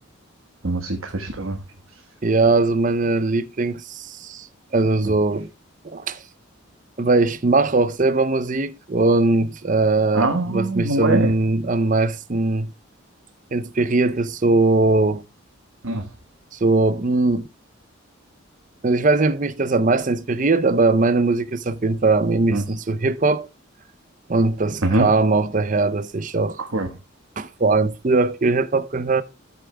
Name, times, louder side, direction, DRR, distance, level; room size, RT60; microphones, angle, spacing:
voice 1, 0.6-1.6 5.0-5.1 10.1-11.3 15.8-16.1 22.5-22.6 24.8-25.1 26.6-26.9, right 2 dB, 90° right, 1.4 m, -23 dB
voice 2, 2.2-4.5 4.7-5.5 5.8-6.2 7.0-12.7 13.5-15.2 16.6-17.5 18.8-23.5 24.3-26.6 27.4-29.2, right 3 dB, 40° right, 0.6 m, -20 dB
13.5 x 8.1 x 2.2 m
head